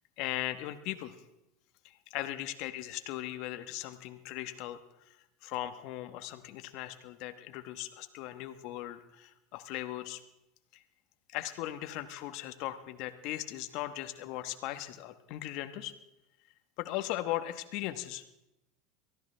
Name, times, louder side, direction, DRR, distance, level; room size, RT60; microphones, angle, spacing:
voice 1, 0.2-1.2 1.8-10.2 10.7-10.8 11.3-15.9 16.8-18.2, left 14 dB, 60° left, 9 dB, 1.1 m, -38 dB
23.0 x 14.0 x 3.3 m, 0.89 s
hypercardioid pair, 100°, 0 cm